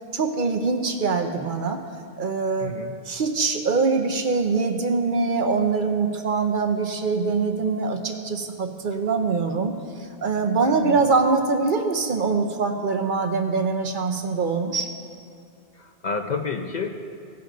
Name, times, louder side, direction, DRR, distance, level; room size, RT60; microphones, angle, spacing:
voice 1, 0.1-1.8 2.2-2.7 3.1-9.7 10.2-14.9, right 4 dB, 55° right, 5 dB, 0.8 m, -23 dB
voice 2, 2.6-3.0 10.6-11.0 15.8-16.9, left 4 dB, 50° left, 5 dB, 0.7 m, -30 dB
17.0 x 6.8 x 3.9 m, 2.4 s
omnidirectional pair, 1.1 m